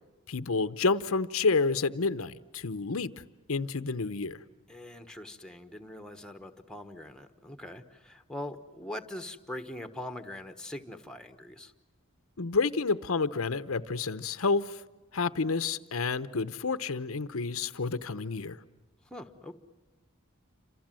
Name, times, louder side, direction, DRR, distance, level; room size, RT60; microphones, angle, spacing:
voice 1, 0.3-3.1 3.5-4.4 12.4-14.8 15.1-18.6, left 4 dB, 85° left, 0.9 m, -29 dB
voice 2, 4.7-11.7 19.1-19.5, left 1 dB, 5° left, 1.2 m, -42 dB
29.0 x 26.5 x 7.6 m
head